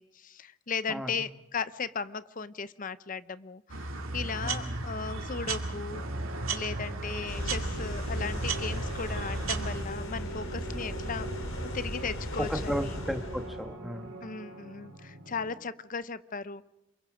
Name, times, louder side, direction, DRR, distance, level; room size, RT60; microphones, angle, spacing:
voice 1, 0.0-6.0 6.5-11.3 11.7-13.0 14.2-16.6, left 5 dB, 40° left, 15 dB, 0.7 m, -36 dB
sound 1, 3.7-9.8, right 3 dB, 90° right, 2.3 m, -35 dB
voice 2, 4.4-4.7 12.4-14.1, equal, ahead, 5 dB, 1.5 m, -34 dB
sound 2, 5.9-15.5, right 1 dB, 60° right, 4.4 m, -46 dB
sound 3, 7.3-13.6, equal, 80° left, 4.3 m, -36 dB
28.0 x 22.5 x 5.1 m, 0.91 s
head